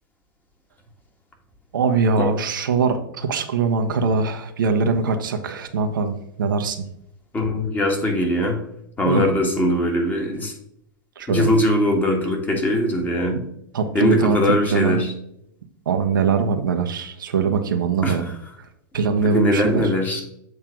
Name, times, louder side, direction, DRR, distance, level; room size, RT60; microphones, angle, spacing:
voice 1, 1.7-6.9 9.0-9.3 11.2-11.5 13.7-15.0 15.9-18.3 18.9-19.9, right 5 dB, 70° right, 6 dB, 0.9 m, -22 dB
voice 2, 7.3-8.6 9.0-10.5 11.3-13.4 13.9-15.1 18.0-18.2 19.3-20.2, left 1 dB, 15° left, 1 dB, 1.6 m, -21 dB
7.8 x 3.3 x 5.9 m, 0.75 s
figure-of-eight pair, 100°, 11 cm